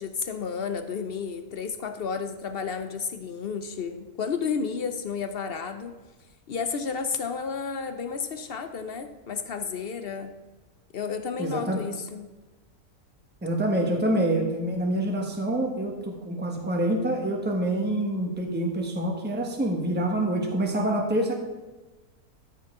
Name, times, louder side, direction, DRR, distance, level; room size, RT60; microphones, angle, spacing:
voice 1, 0.0-6.0 6.5-10.3 10.9-12.3, left 6 dB, 60° left, 8 dB, 0.6 m, -32 dB
voice 2, 11.4-11.8 13.4-21.3, right 1 dB, 5° right, 1 dB, 1.1 m, -26 dB
13.5 x 7.3 x 3.7 m, 1.2 s
omnidirectional pair, 1.6 m